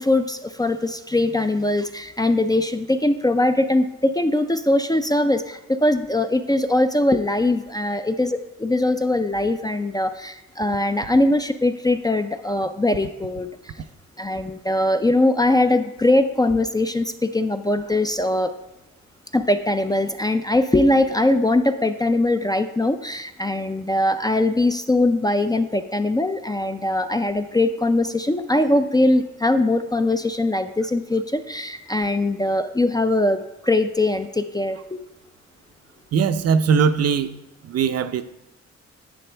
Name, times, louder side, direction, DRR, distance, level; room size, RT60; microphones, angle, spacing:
voice 1, 0.0-13.7 14.2-18.5 19.3-35.0, left 1 dB, 15° left, 8 dB, 0.3 m, -21 dB
voice 2, 36.1-37.4 37.6-38.2, right 6 dB, 60° right, 10 dB, 0.5 m, -20 dB
11.0 x 8.4 x 3.3 m, 0.93 s
wide cardioid pair, 135°, 29 cm